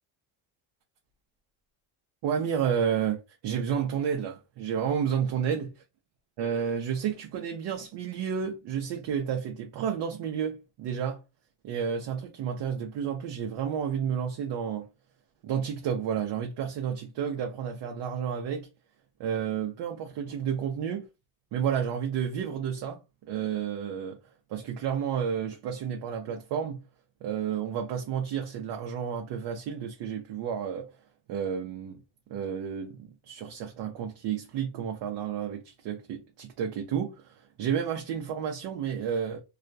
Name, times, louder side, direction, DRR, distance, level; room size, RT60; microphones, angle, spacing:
voice 1, 2.2-3.2 3.4-5.7 6.4-11.2 11.6-14.9 15.4-18.7 19.2-21.1 21.5-23.0 23.3-24.2 24.5-26.8 27.2-30.9 31.3-32.0 32.3-39.4, right 8 dB, 55° right, 0.6 m, -31 dB
2.3 x 2.1 x 2.6 m
cardioid pair, 140°, 49 cm